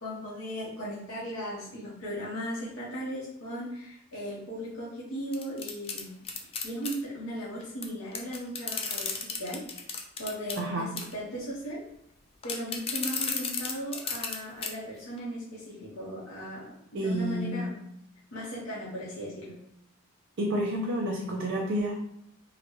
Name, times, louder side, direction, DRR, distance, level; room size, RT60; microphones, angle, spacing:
voice 1, 0.0-6.1 6.6-9.6 10.2-11.8 12.4-17.8 18.3-19.6, equal, 70° left, -7 dB, 0.9 m, -37 dB
sound 1, 5.3-7.0 7.8-7.9 8.1-10.6 11.0-11.2 12.4-14.4 14.6-14.7 15.2-15.3, left 5 dB, 25° left, 0.3 m, -33 dB
voice 2, 10.6-10.9 16.9-17.6 20.4-22.0, right 1 dB, 55° right, -1 dB, 0.5 m, -29 dB
3.8 x 2.2 x 3.1 m, 0.78 s
head